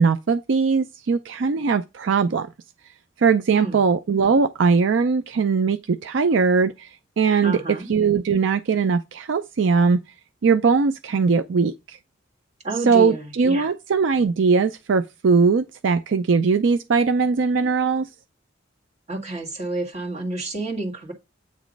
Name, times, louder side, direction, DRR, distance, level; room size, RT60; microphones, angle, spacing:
voice 1, 0.0-2.5 3.2-6.9 7.2-7.6 7.9-10.0 10.4-12.0 12.9-18.1, right 5 dB, 75° right, 0.4 m, -20 dB
voice 2, 7.4-7.9 12.6-13.7 19.1-21.1, right 2 dB, 35° right, 1.8 m, -30 dB
8.4 x 3.0 x 5.1 m
head